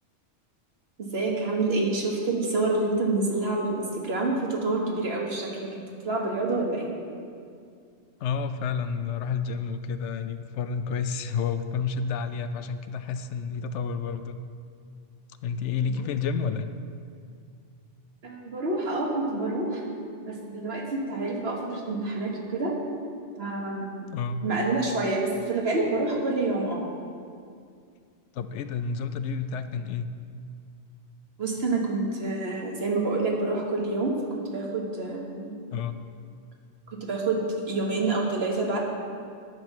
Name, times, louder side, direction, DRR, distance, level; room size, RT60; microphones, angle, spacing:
voice 1, 1.1-6.9 18.2-22.7 23.4-24.1 24.4-26.9 31.4-34.1 34.5-35.5 37.0-38.8, right 2 dB, 60° right, -1 dB, 1.7 m, -28 dB
voice 2, 8.2-14.4 15.4-16.7 24.1-24.5 28.3-30.1 35.7-36.0, left 6 dB, 80° left, 10 dB, 0.9 m, -30 dB
10.5 x 7.4 x 6.0 m, 2.3 s
omnidirectional pair, 1.2 m